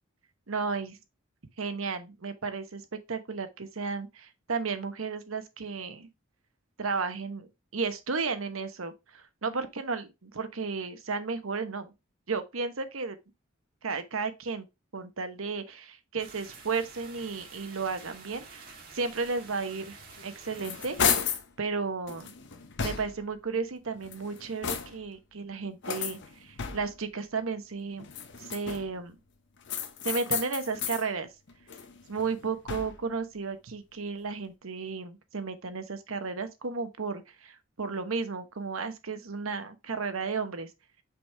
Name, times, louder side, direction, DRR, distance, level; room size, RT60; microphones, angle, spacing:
voice 1, 0.5-1.0 1.6-2.8 3.1-6.1 6.8-7.5 7.7-11.9 12.3-13.2 13.8-14.7 14.9-21.0 21.6-22.3 22.8-28.1 28.4-29.2 30.0-31.3 32.1-40.7, right 4 dB, 75° right, 1.0 m, -33 dB
sound 1, 16.2-21.2, right 4 dB, 45° right, 2.3 m, -49 dB
sound 2, 20.2-21.5 22.1-23.4 23.9-25.2 25.8-27.1 28.0-29.0 29.7-31.1 31.5-33.1, left 7 dB, 60° left, 0.9 m, -33 dB
5.9 x 4.9 x 3.3 m
head